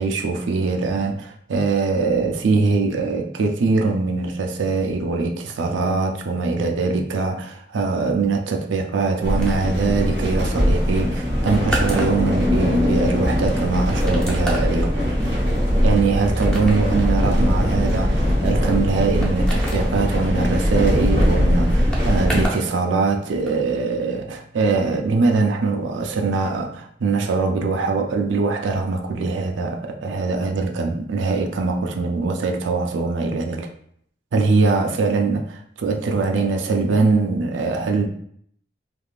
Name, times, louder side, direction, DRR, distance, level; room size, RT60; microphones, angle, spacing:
voice 1, 0.0-15.0 15.8-33.7 34.3-38.1, right 4 dB, 85° right, 3 dB, 0.4 m, -22 dB
sound 1, 9.2-22.5, equal, 70° right, 0.8 m, -21 dB
sound 2, 9.4-22.7 23.0-23.6, right 1 dB, 5° left, 0.6 m, -34 dB
3.4 x 2.4 x 2.4 m, 0.65 s
head